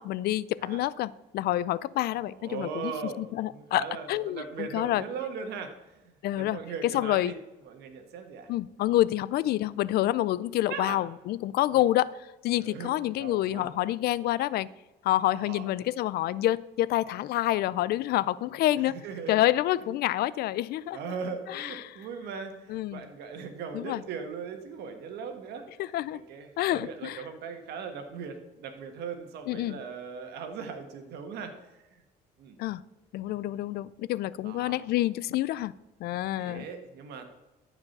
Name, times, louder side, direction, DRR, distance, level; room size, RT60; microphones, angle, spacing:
voice 1, 0.0-2.9 3.2-5.0 6.2-7.3 8.5-14.7 15.0-19.0 19.3-21.0 21.5-21.8 22.7-23.0 23.7-24.0 25.8-26.2 26.6-27.2 29.5-29.8 32.6-32.8 33.1-35.7 36.0-36.6, left 14 dB, 70° left, 20 dB, 0.4 m, -28 dB
voice 2, 2.2-7.4 7.6-8.5 10.7-11.0 11.7-11.8 12.6-13.7 15.3-15.7 18.8-19.4 20.9-25.7 26.3-32.0 32.4-32.6 34.4-34.8 36.4-37.3, right 5 dB, 75° right, 7 dB, 1.5 m, -39 dB
13.5 x 4.9 x 6.6 m, 1.0 s
cardioid pair, 110°, 17 cm